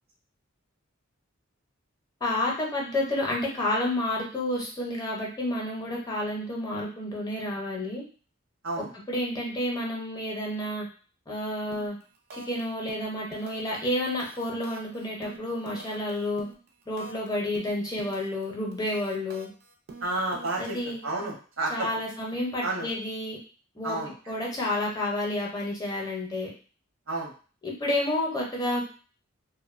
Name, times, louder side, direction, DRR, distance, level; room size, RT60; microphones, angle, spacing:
voice 1, 2.2-8.0 8.8-10.9 11.3-12.0 12.3-16.5 16.9-19.5 20.6-21.0 21.7-23.4 23.8-24.0 24.3-26.5 27.6-28.8, left 1 dB, 20° left, -2 dB, 0.6 m, -30 dB
sound 1, 11.7-12.0 12.3-12.6 12.9-13.8 14.0-17.3 17.5-18.4 18.7-20.9, right 3 dB, 50° right, 0.4 m, -46 dB
voice 2, 20.0-20.8 21.0-21.9 22.6-22.9 23.8-24.1 27.1-27.3, right 2 dB, 80° right, -1 dB, 0.8 m, -30 dB
2.5 x 2.1 x 2.4 m, 0.39 s
head